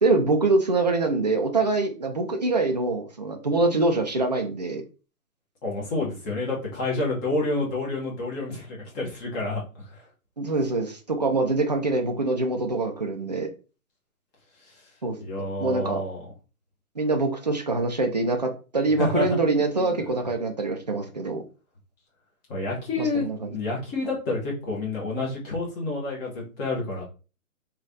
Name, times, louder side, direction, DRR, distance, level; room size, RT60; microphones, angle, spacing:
voice 1, 0.0-4.8 10.4-13.5 15.0-15.2 15.6-16.0 17.0-21.4 23.0-23.5, right 3 dB, 30° right, 3 dB, 0.4 m, -24 dB
voice 2, 5.6-9.6 9.9-10.0 15.2-16.2 19.0-19.4 19.7-20.0 22.5-27.0, left 2 dB, 15° left, -3 dB, 0.7 m, -29 dB
3.2 x 2.3 x 3.9 m, 0.34 s
hypercardioid pair, 145°, 44 cm